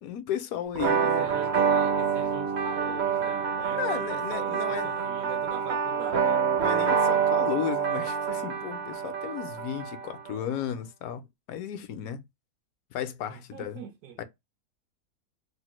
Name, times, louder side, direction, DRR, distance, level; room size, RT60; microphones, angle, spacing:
voice 1, 0.0-1.2 3.6-4.9 6.6-11.2 11.5-12.2 12.9-13.8 14.2-14.3, left 10 dB, 75° left, 1.0 m, -34 dB
sound 1, 0.8-10.4, right 7 dB, 60° right, 0.7 m, -27 dB
voice 2, 1.0-6.5 13.3-14.2, right 7 dB, 80° right, 1.0 m, -42 dB
3.3 x 2.1 x 3.0 m
omnidirectional pair, 1.6 m